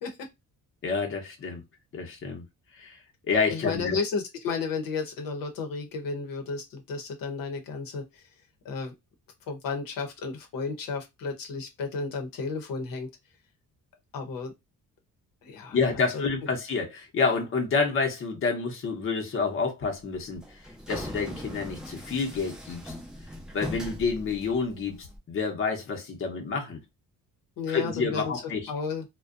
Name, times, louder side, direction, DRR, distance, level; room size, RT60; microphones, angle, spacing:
voice 1, 0.8-1.6 1.9-2.4 2.8-3.0 3.3-4.0 15.7-20.4 20.9-22.9 23.5-26.8 27.7-28.7, left 4 dB, 40° left, 0.7 m, -28 dB
voice 2, 3.5-8.0 8.6-8.9 9.5-13.1 14.1-14.5 15.4-15.8 16.1-16.3 27.6-28.3 28.7-29.0, left 4 dB, 80° left, 0.8 m, -33 dB
sound 1, 20.1-25.2, equal, ahead, 0.4 m, -40 dB
2.5 x 2.2 x 2.4 m
cardioid pair, 155°, 33 cm